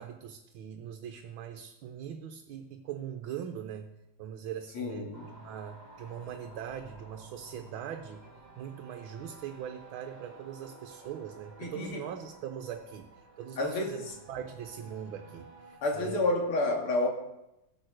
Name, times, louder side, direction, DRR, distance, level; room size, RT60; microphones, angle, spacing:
voice 1, 0.0-3.9 4.2-8.3 8.6-16.2, right 9 dB, 75° right, 6 dB, 1.6 m, -41 dB
voice 2, 4.7-5.3 11.6-12.0 13.6-14.0 15.8-17.1, left 2 dB, 80° left, 2 dB, 3.0 m, -29 dB
sound 1, 5.1-15.8, right 2 dB, 25° right, 3.4 m, -53 dB
15.5 x 8.7 x 6.4 m, 0.91 s
omnidirectional pair, 2.3 m